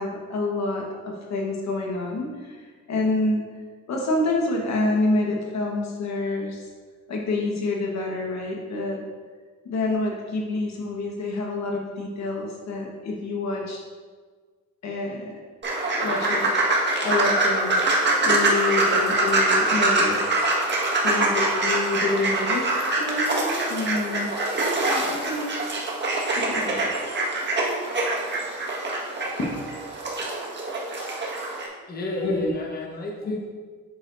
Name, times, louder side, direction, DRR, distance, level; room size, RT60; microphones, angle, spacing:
voice 1, 0.0-3.4 3.9-6.7 7.1-9.0 9.6-13.8 14.8-15.4 16.0-16.5 17.0-17.8 18.2-20.3 21.0-22.7 23.0-24.3 24.8-25.6 26.4-26.9 29.4-29.5 32.2-32.5 33.2-33.3, left 2 dB, 60° left, 0 dB, 1.3 m, -27 dB
sound 1, 15.6-31.7, right 2 dB, 35° right, 1.6 m, -24 dB
voice 2, 31.9-33.5, left 1 dB, 30° left, -1 dB, 1.3 m, -32 dB
8.4 x 6.4 x 2.6 m, 1.5 s
cardioid pair, 90°, 30 cm